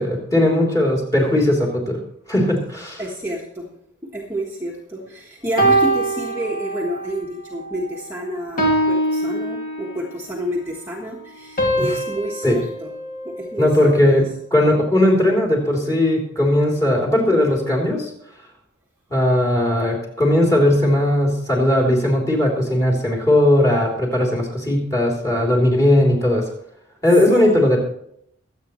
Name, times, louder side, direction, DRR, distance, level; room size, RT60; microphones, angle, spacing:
voice 1, 0.0-2.0 2.3-3.0 11.8-11.9 12.4-12.6 13.6-14.3 14.5-18.1 19.1-26.5 27.0-27.8, left 1 dB, 15° left, -1 dB, 3.5 m, -18 dB
voice 2, 3.0-3.7 4.1-12.9 13.2-14.2 27.3-27.5, equal, 10° right, -3 dB, 1.4 m, -29 dB
sound 1, 5.6-7.1 7.6-7.9 8.6-10.2 11.6-14.0, right 1 dB, 40° left, 2.5 m, -23 dB
23.5 x 8.5 x 3.2 m, 0.72 s
head